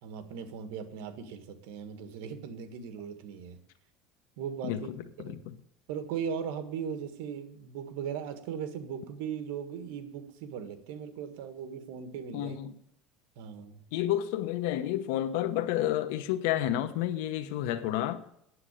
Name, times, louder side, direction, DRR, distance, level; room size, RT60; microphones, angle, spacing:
voice 1, 0.0-3.6 4.4-4.9 5.2-5.4 5.9-12.6 13.3-13.8, right 7 dB, 80° right, 1.6 m, -38 dB
voice 2, 5.2-5.5 12.3-12.7 13.9-18.2, left 12 dB, 80° left, 1.0 m, -30 dB
9.6 x 7.6 x 8.4 m
cardioid pair, 150°, 0 cm